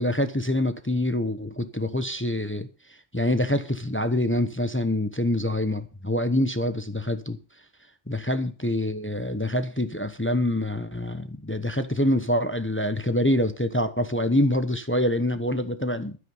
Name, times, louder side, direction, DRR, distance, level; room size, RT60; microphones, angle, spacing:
voice 1, 0.0-7.4 8.1-16.2, left 1 dB, 10° left, 0.8 m, -26 dB
13.0 x 9.6 x 5.5 m
omnidirectional pair, 1.2 m